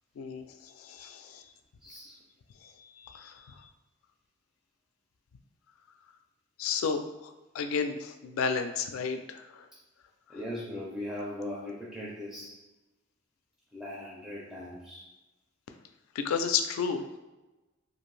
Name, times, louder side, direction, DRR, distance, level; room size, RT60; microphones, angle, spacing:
voice 1, 0.2-1.4 2.6-3.7 6.6-9.7 16.1-17.1, left 6 dB, 85° left, 7 dB, 0.3 m, -33 dB
voice 2, 1.8-2.1 10.3-12.5 13.7-15.0, left 1 dB, 5° right, -6 dB, 0.4 m, -39 dB
2.5 x 2.5 x 3.1 m, 1.1 s
head